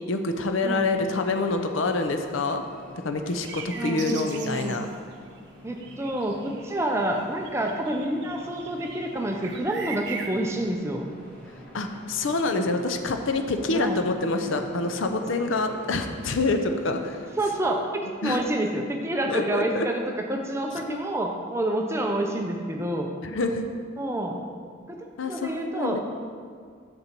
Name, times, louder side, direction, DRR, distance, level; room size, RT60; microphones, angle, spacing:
voice 1, 0.1-2.6 3.0-4.9 11.7-17.2 18.2-18.4 19.3-19.9 20.9-21.0 23.2-23.7 25.2-26.0, left 3 dB, 70° left, 6 dB, 0.6 m, -26 dB
sound 1, 0.7-17.6, equal, 5° left, 1.6 m, -48 dB
sound 2, 3.2-5.4 5.8-6.8 7.1-10.4, right 5 dB, 55° right, 0.7 m, -40 dB
voice 2, 3.8-4.8 5.6-11.1 13.7-14.0 17.4-23.1 24.0-24.4 24.9-26.0, right 1 dB, 15° right, 2 dB, 0.5 m, -28 dB
7.0 x 6.7 x 4.4 m, 2.1 s
head